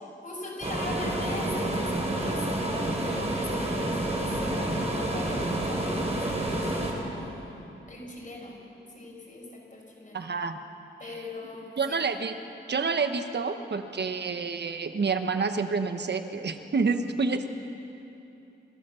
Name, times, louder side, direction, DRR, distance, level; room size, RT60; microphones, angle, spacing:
voice 1, 0.2-8.6 8.9-10.3 11.0-12.0, left 2 dB, 40° left, -1 dB, 5.9 m, -40 dB
sound 1, 0.6-6.9, right 1 dB, 30° right, 4.2 m, -29 dB
voice 2, 10.1-10.6 11.8-12.3 12.7-17.5, right 4 dB, 55° right, 8 dB, 1.3 m, -28 dB
27.5 x 13.5 x 7.0 m, 2.9 s
cardioid pair, 80°, 21 cm